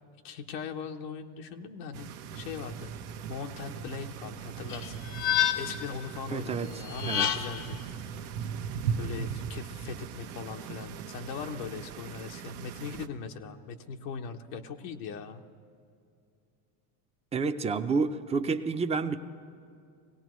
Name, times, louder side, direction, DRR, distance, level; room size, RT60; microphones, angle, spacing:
voice 1, 0.2-2.1 2.3-2.9 3.3-4.9 5.5-7.8 9.0-15.4, left 6 dB, 90° left, 4 dB, 1.0 m, -40 dB
sound 1, 1.9-13.1, right 7 dB, 75° right, 0.9 m, -39 dB
sound 2, 4.7-5.9 6.9-7.7, left 11 dB, 45° left, 0.7 m, -29 dB
voice 2, 6.3-6.7 7.1-7.3 17.3-19.2, right 4 dB, 15° right, 8 dB, 0.5 m, -29 dB
20.5 x 17.0 x 3.1 m, 2.4 s
supercardioid pair, 100°, 46 cm